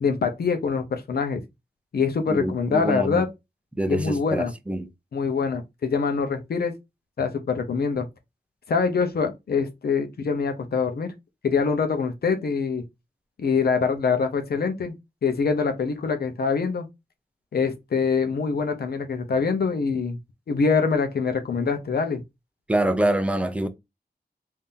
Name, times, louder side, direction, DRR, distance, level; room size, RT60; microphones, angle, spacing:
voice 1, 0.0-1.4 1.9-3.3 3.9-4.5 5.1-6.7 7.2-8.1 8.7-11.1 11.4-12.8 13.4-14.9 15.2-16.9 17.5-20.2 20.5-22.2, left 5 dB, 70° left, 0.8 m, -24 dB
voice 2, 2.3-3.2 3.8-4.9 22.7-23.7, right 1 dB, 5° right, 0.5 m, -25 dB
3.7 x 2.8 x 2.7 m
wide cardioid pair, 95°, 17 cm